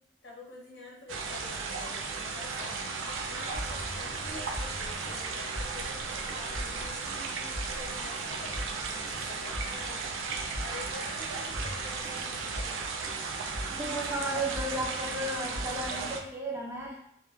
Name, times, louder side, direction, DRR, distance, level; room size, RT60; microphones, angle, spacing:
voice 1, 0.2-2.8 3.3-10.2 10.6-12.9, left 3 dB, 60° left, -4 dB, 0.8 m, -48 dB
sound 1, 1.1-16.2, right 4 dB, 85° right, 0.4 m, -35 dB
sound 2, 3.5-16.2, equal, 65° right, 0.7 m, -42 dB
voice 2, 13.7-17.0, right 1 dB, 10° right, -2 dB, 0.4 m, -34 dB
2.2 x 2.1 x 3.0 m, 0.72 s
head